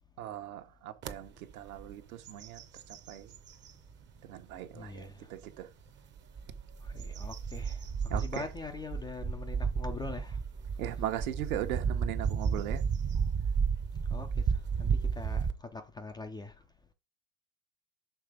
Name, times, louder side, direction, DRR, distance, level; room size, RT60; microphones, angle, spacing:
voice 1, 0.2-3.3 4.2-5.7 8.1-8.5 10.8-12.8, right 12 dB, 70° right, 1.1 m, -39 dB
sound 1, 1.0-1.1 1.7-1.9 2.2-3.7 4.3-4.4 6.2-15.5, right 6 dB, 25° right, 0.7 m, -32 dB
voice 2, 4.7-5.3 6.8-10.4 14.1-16.5, left 4 dB, 10° left, 0.3 m, -43 dB
6.6 x 3.3 x 4.9 m
hypercardioid pair, 110°, 44 cm